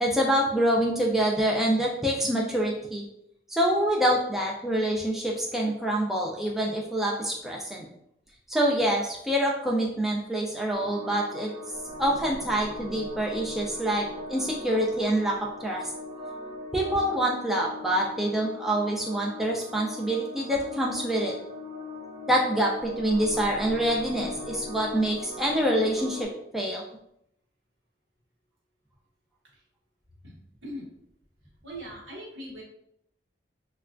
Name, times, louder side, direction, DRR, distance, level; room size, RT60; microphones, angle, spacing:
voice 1, 0.0-3.0 3.5-7.9 8.5-11.5 12.0-15.8 16.7-21.4 22.3-26.8, right 1 dB, ahead, -3 dB, 0.3 m, -26 dB
sound 1, 10.7-26.2, left 2 dB, 30° left, 1.0 m, -39 dB
voice 2, 31.6-32.6, equal, 85° right, -2 dB, 1.0 m, -39 dB
3.2 x 2.2 x 2.4 m, 0.75 s
head